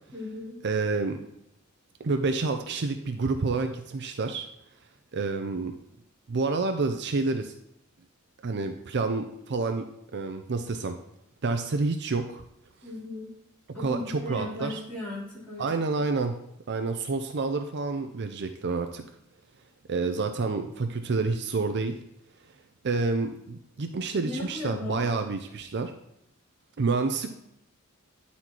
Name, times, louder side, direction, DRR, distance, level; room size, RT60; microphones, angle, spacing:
voice 1, 0.1-0.6 12.8-13.3 13.7-15.7 24.2-25.1, left 2 dB, 5° left, -8 dB, 3.3 m, -36 dB
voice 2, 0.6-1.3 2.0-4.5 5.1-5.8 6.3-7.5 8.4-9.9 10.1-11.0 11.4-12.4 13.8-14.8 15.6-16.4 16.7-19.0 19.9-22.0 22.8-25.9 26.8-27.3, right 3 dB, 55° right, 7 dB, 0.5 m, -28 dB
9.6 x 4.2 x 4.5 m, 0.79 s
head